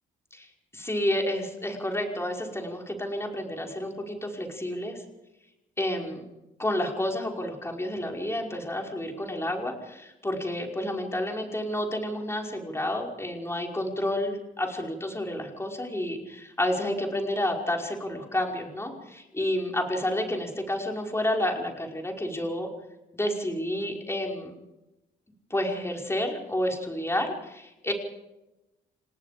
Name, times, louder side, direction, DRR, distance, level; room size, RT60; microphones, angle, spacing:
voice 1, 0.7-5.0 5.8-6.2 6.6-22.7 23.1-24.5 25.5-27.9, left 1 dB, 15° left, 2 dB, 5.4 m, -30 dB
28.5 x 19.0 x 5.2 m, 0.97 s
cardioid pair, 90°, 20 cm